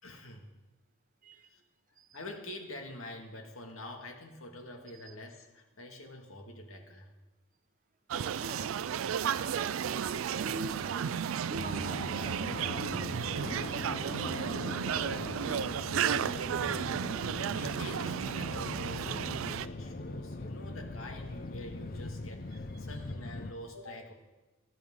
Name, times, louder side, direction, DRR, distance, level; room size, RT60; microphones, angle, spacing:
voice 1, 0.0-0.5 1.4-1.6 2.1-7.1 17.5-24.1, left 1 dB, 90° left, 3 dB, 2.1 m, -46 dB
voice 2, 8.1-9.0 9.3-13.4 13.7-16.3, right 1 dB, 40° right, 9 dB, 0.9 m, -45 dB
sound 1, 8.1-19.7, right 8 dB, 75° right, 0.4 m, -33 dB
Fixed-wing aircraft airplane, 11.5-23.5, left 2 dB, 45° left, 0.6 m, -41 dB
18.0 x 13.0 x 3.8 m, 1.1 s
head